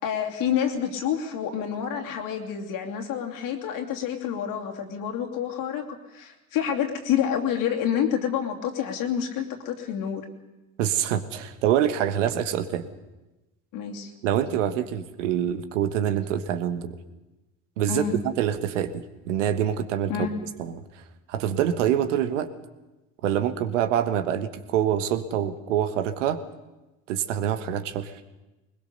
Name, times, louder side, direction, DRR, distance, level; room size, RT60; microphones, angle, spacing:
voice 1, 0.0-10.3 13.7-14.1 17.9-18.2 20.1-20.3, left 9 dB, 65° left, 2 dB, 2.8 m, -28 dB
voice 2, 10.8-12.9 14.2-17.0 17.8-20.1 20.6-20.8 21.3-22.5 23.2-26.4 27.1-28.1, right 10 dB, 75° right, 11 dB, 1.4 m, -25 dB
21.0 x 20.5 x 6.8 m, 1.0 s
hypercardioid pair, 60°, 37 cm